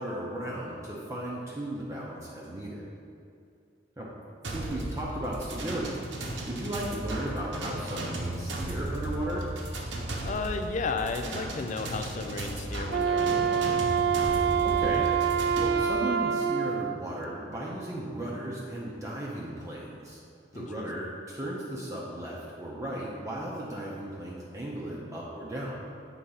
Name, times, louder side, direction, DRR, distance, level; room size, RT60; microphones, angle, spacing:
voice 1, 0.0-2.8 4.0-4.1 4.5-6.0 6.5-9.5 14.6-15.1 15.6-20.2 20.5-25.7, right 1 dB, 20° right, -5 dB, 0.8 m, -35 dB
sound 1, 4.4-15.7, right 1 dB, 90° right, 0.9 m, -35 dB
voice 2, 10.2-13.8 20.5-21.2, left 4 dB, 45° left, 6 dB, 0.4 m, -34 dB
Wind instrument woodwind instrument, 12.8-17.0, right 7 dB, 60° right, 0.3 m, -26 dB
7.5 x 3.8 x 5.6 m, 2.4 s
head